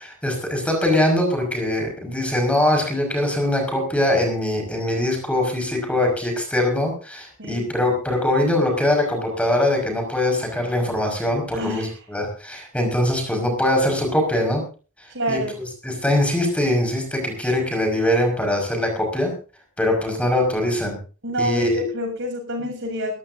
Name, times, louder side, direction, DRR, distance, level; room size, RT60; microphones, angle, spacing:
voice 1, 0.0-14.6 15.0-19.3 19.8-21.0 21.4-21.9, left 1 dB, 5° left, 3 dB, 5.3 m, -22 dB
voice 2, 11.5-11.9 15.1-15.6 21.2-23.2, equal, 60° right, 2 dB, 7.6 m, -27 dB
22.0 x 15.0 x 2.7 m, 0.35 s
head